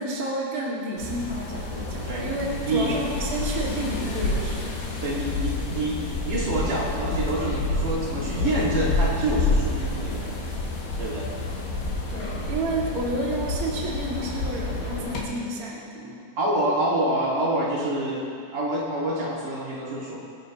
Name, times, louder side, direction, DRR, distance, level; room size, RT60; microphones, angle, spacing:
voice 1, 0.0-4.7 12.1-16.2, right 1 dB, 30° right, -5 dB, 1.9 m, -30 dB
sound 1, 1.0-15.2, left 2 dB, 85° left, 4.2 m, -29 dB
voice 2, 2.7-3.0 5.0-10.5 11.0-11.3 16.4-18.3 18.5-20.2, right 1 dB, 55° right, -5 dB, 3.5 m, -27 dB
26.0 x 10.5 x 3.0 m, 2.3 s
omnidirectional pair, 4.7 m